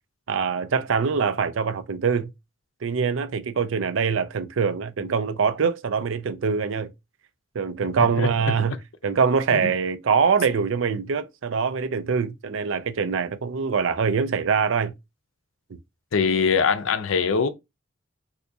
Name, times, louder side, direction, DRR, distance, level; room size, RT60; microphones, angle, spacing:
voice 1, 0.3-2.3 2.8-6.9 7.5-8.7 9.0-14.9, right 5 dB, 75° right, 0.4 m, -24 dB
voice 2, 8.0-8.3 9.5-9.7 16.1-17.5, left 5 dB, 85° left, 0.5 m, -22 dB
3.4 x 2.7 x 2.7 m
head